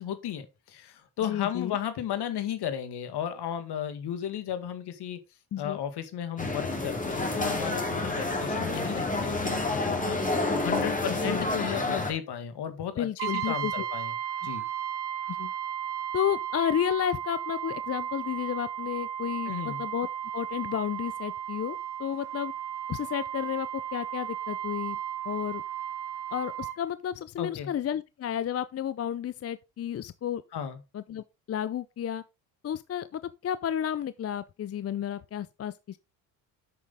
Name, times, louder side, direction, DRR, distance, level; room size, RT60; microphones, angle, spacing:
voice 1, 0.0-5.2 5.6-14.1 14.4-14.6 19.5-19.8 27.4-27.7 30.5-30.8, left 9 dB, 60° left, 2.0 m, -34 dB
voice 2, 1.2-1.8 5.5-5.8 11.1-11.5 13.0-13.8 15.3-15.5 16.1-20.1 20.3-22.5 22.9-25.0 25.3-25.6 26.3-30.4 30.9-32.2 32.6-36.0, left 10 dB, 35° left, 0.5 m, -32 dB
sound 1, 6.4-12.1, left 2 dB, 15° left, 2.9 m, -29 dB
Brass instrument, 13.2-26.8, right 10 dB, 60° right, 1.3 m, -35 dB
8.4 x 6.5 x 3.6 m
supercardioid pair, 70°, 44 cm